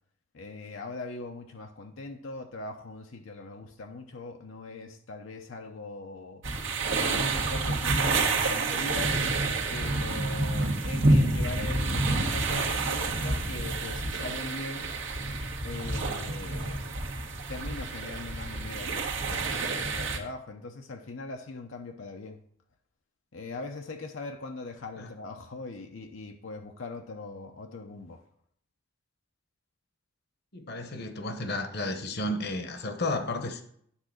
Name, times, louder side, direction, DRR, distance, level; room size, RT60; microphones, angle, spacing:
voice 1, 0.3-6.4 7.0-9.2 9.7-14.9 15.6-16.8 17.5-22.4 23.3-28.2, left 3 dB, 85° left, 0.7 m, -41 dB
sound 1, 6.4-20.2, right 3 dB, 80° right, 1.4 m, -28 dB
voice 2, 30.5-33.6, left 2 dB, 55° left, 1.0 m, -32 dB
10.0 x 3.8 x 6.4 m
head